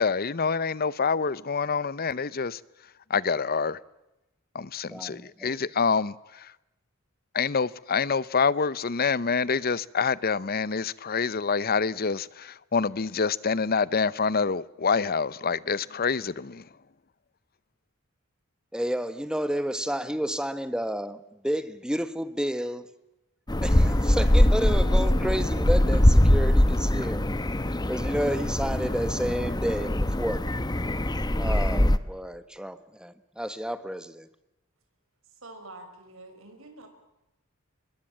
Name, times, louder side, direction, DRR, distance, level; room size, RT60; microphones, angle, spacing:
voice 1, 0.0-2.6 3.1-3.8 4.5-6.1 7.3-16.6, left 5 dB, 45° left, 0.8 m, -26 dB
voice 2, 4.9-5.6 18.7-22.9 23.6-27.2 27.9-30.4 31.4-34.3, equal, 5° right, 1.3 m, -31 dB
sound 1, 23.5-32.0, left 1 dB, 20° left, 1.0 m, -22 dB
voice 3, 35.2-36.9, right 2 dB, 75° right, 5.9 m, -46 dB
25.0 x 22.0 x 7.5 m
head